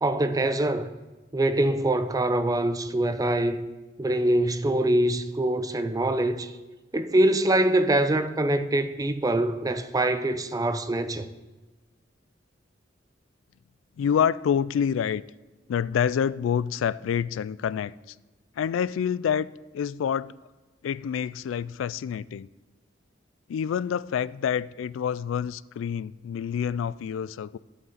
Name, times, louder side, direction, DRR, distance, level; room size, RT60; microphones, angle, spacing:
voice 1, 0.0-0.9 1.3-3.7 4.0-6.5 6.9-11.3, right 1 dB, 20° right, 0.5 m, -24 dB
voice 2, 14.0-15.2 15.7-17.9 18.6-19.5 19.7-20.4 20.8-22.5 23.5-27.6, left 8 dB, 85° left, 0.3 m, -27 dB
11.5 x 7.9 x 4.1 m
head